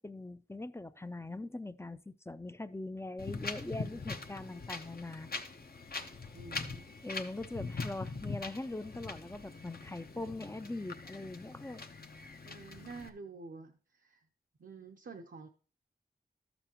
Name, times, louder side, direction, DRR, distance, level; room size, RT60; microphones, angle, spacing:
voice 1, 0.0-5.3 7.0-11.8, left 2 dB, 15° left, 0.4 m, -42 dB
Wind, 3.2-13.1, left 4 dB, 60° left, 0.9 m, -42 dB
voice 2, 6.3-6.8 12.4-13.7 14.0-14.2 14.6-15.5, right 4 dB, 80° right, 0.7 m, -48 dB
12.5 x 7.0 x 2.9 m
wide cardioid pair, 60°, 18 cm